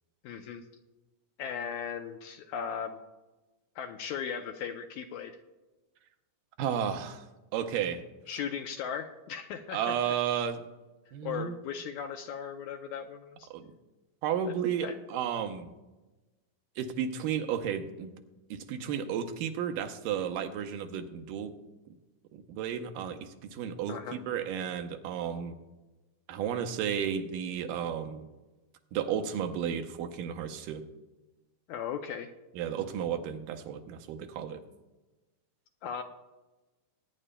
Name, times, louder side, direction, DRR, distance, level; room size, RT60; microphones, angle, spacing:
voice 1, 0.2-0.6 1.4-3.0 3.8-5.3 8.3-10.1 11.2-13.5 14.5-14.6 14.8-15.0 23.9-24.2 31.7-32.3 35.8-36.0, left 7 dB, 75° left, 6 dB, 1.8 m, -37 dB
voice 2, 6.6-7.3 7.5-8.0 9.7-10.7 11.1-11.6 13.5-13.7 14.2-15.7 16.8-18.1 18.5-21.5 22.3-25.6 26.3-28.3 28.9-30.8 32.5-34.6, right 8 dB, 85° right, 7 dB, 2.4 m, -33 dB
21.0 x 9.8 x 2.2 m, 1.1 s
omnidirectional pair, 3.8 m